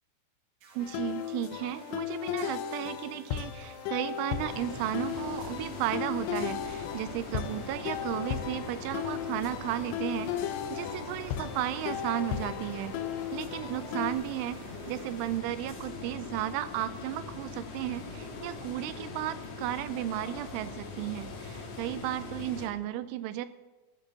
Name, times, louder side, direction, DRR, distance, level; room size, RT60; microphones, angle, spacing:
sound 1, 0.6-15.4, right 4 dB, 70° right, 3.8 m, -52 dB
sound 2, 0.8-14.1, left 10 dB, 80° left, 2.5 m, -36 dB
voice 1, 0.8-10.3 10.7-12.9 13.3-14.6 14.9-23.5, right 13 dB, 85° right, 13 dB, 2.9 m, -34 dB
sound 3, 4.5-22.7, left 4 dB, 65° left, 4.0 m, -42 dB
14.5 x 6.8 x 7.1 m, 1.2 s
omnidirectional pair, 5.6 m